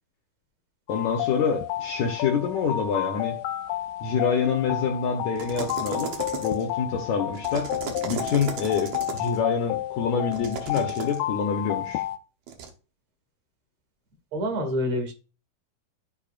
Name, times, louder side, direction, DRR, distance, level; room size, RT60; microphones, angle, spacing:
sound 1, 0.9-12.2, left 13 dB, 85° left, 2.5 m, -31 dB
voice 1, 0.9-3.4 4.0-6.1 6.4-7.7 8.1-12.0, left 6 dB, 70° left, 2 dB, 1.9 m, -26 dB
sound 2, 5.4-6.7 7.3-9.4 10.3-11.2 12.5-12.7, right 7 dB, 65° right, 1.8 m, -35 dB
voice 2, 14.3-15.1, equal, 50° right, 4 dB, 2.9 m, -27 dB
13.5 x 4.7 x 2.5 m, 0.34 s
omnidirectional pair, 4.2 m